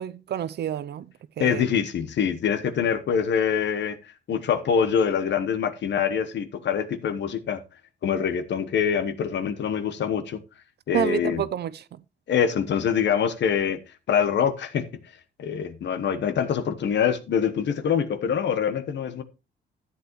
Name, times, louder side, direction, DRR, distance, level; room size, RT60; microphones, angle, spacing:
voice 1, 0.0-1.7 10.9-12.0, right 10 dB, 55° right, 0.5 m, -29 dB
voice 2, 1.4-4.0 4.3-7.6 8.0-10.4 10.9-11.4 12.3-13.8 14.1-14.9 15.4-19.2, left 7 dB, 65° left, 1.1 m, -24 dB
12.5 x 8.3 x 3.0 m
cardioid pair, 90°, 20 cm